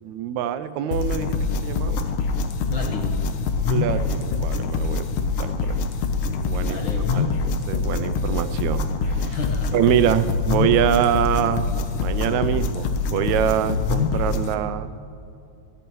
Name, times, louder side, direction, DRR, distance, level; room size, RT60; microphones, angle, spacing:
voice 1, 0.0-1.4 1.6-2.1 3.7-5.8 6.4-6.8 7.1-9.4 9.7-11.7 12.0-14.9, right 10 dB, 80° right, 12 dB, 1.8 m, -24 dB
sound 1, 0.9-14.5, left 4 dB, 70° left, 1.2 m, -25 dB
voice 2, 2.7-3.3 6.6-7.5 9.3-9.8, left 3 dB, 55° left, 0 dB, 1.6 m, -32 dB
23.5 x 14.0 x 3.1 m, 2.7 s
omnidirectional pair, 3.4 m